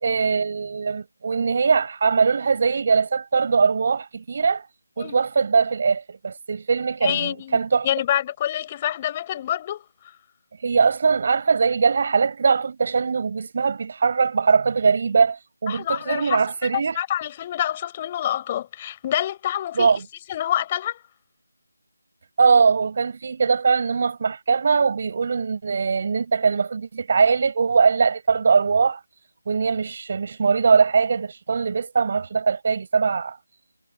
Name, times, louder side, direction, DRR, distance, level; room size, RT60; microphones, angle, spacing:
voice 1, 0.0-4.6 5.0-7.9 10.6-17.0 19.7-20.0 22.4-29.0 29.5-33.4, right 5 dB, 40° right, 6.2 m, -21 dB
voice 2, 7.0-9.8 15.7-16.7 16.9-19.9 20.3-21.0, left 11 dB, 20° left, 6.3 m, -27 dB
figure-of-eight pair, 160°, 0 cm